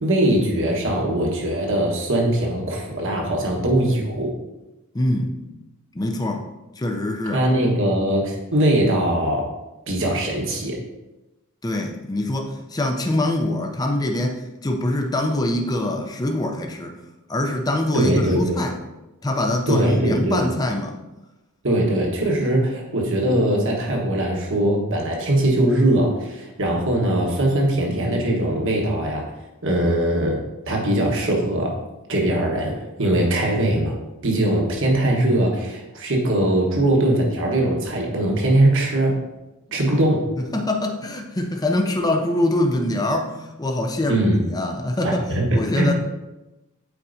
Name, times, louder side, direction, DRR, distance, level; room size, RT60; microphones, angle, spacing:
voice 1, 0.0-4.3 7.3-9.5 9.9-10.8 17.9-18.6 19.7-20.4 21.6-29.3 29.6-31.8 32.1-34.0 34.2-39.3 39.7-40.3 44.1-44.4 45.0-45.9, right 1 dB, 60° right, -1 dB, 1.3 m, -21 dB
voice 2, 4.9-5.4 5.9-6.4 6.8-7.4 11.6-16.9 17.3-18.7 19.2-20.9 39.9-40.0 40.5-45.9, left 1 dB, 15° left, 2 dB, 0.5 m, -24 dB
8.3 x 4.6 x 2.7 m, 1.0 s
head